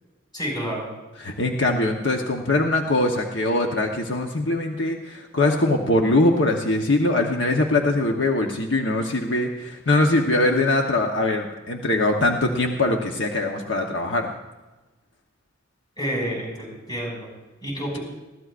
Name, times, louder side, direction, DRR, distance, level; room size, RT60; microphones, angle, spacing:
voice 1, 0.3-0.9 16.0-17.3 17.6-18.0, equal, 20° left, -1 dB, 5.8 m, -29 dB
voice 2, 1.2-14.3, left 2 dB, 70° left, 2 dB, 1.1 m, -22 dB
20.5 x 15.5 x 2.5 m, 1.1 s
head